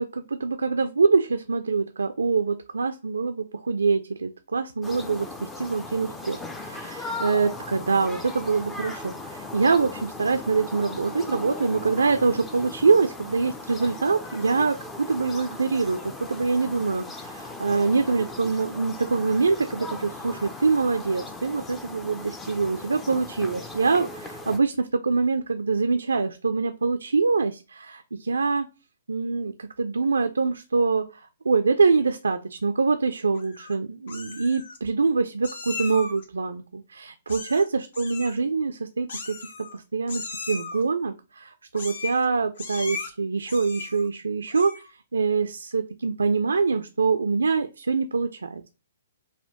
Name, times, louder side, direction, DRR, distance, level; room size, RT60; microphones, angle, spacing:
voice 1, 0.0-28.7 29.1-31.1 31.4-39.4 39.7-44.7 45.1-48.7, right 4 dB, 65° right, 7 dB, 0.3 m, -24 dB
sound 1, 4.8-24.6, left 2 dB, 10° left, 0.4 m, -38 dB
Meow, 33.3-33.8 34.1-34.8 35.4-36.3 37.3-37.7 37.9-38.4 39.1-39.8 40.1-40.8 41.7-42.3 42.6-43.1 43.5-44.1 44.5-44.9, left 4 dB, 55° left, 0.7 m, -37 dB
5.5 x 2.2 x 2.8 m, 0.29 s
figure-of-eight pair, 120°, 0 cm